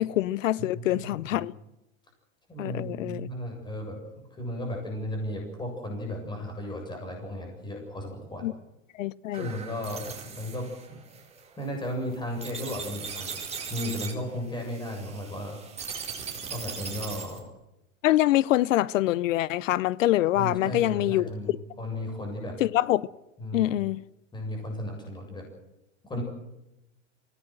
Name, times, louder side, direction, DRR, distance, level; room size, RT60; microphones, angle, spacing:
voice 1, 0.0-1.5 2.6-3.3 8.4-8.5 9.0-9.5 18.0-21.6 22.6-23.1 23.5-24.0, left 15 dB, 70° left, 0.8 m, -25 dB
voice 2, 0.6-1.5 2.5-8.5 9.3-11.0 11.6-13.3 13.7-15.6 16.5-17.4 20.4-22.6 23.4-23.8 24.3-25.5 26.0-26.2, left 1 dB, 10° left, 7.6 m, -35 dB
sound 1, 9.3-17.4, right 6 dB, 15° right, 4.4 m, -39 dB
24.5 x 18.0 x 7.9 m
hypercardioid pair, 135°, 40 cm